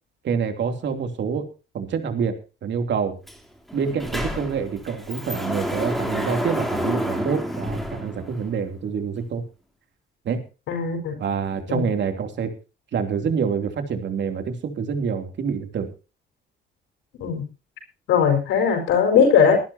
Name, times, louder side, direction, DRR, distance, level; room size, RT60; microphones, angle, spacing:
voice 1, 0.2-1.5 1.7-3.2 3.7-9.4 10.2-10.4 11.2-12.5 12.9-15.9, right 6 dB, 65° right, 6 dB, 3.1 m, -26 dB
Sliding door, 3.3-3.4 3.7-8.7, equal, ahead, 3.3 m, -29 dB
voice 2, 10.7-11.2 11.7-11.9 17.2-17.4 18.1-19.6, left 6 dB, 90° left, 4 dB, 4.9 m, -19 dB
22.0 x 11.5 x 2.9 m, 0.31 s
cardioid pair, 90°, 20 cm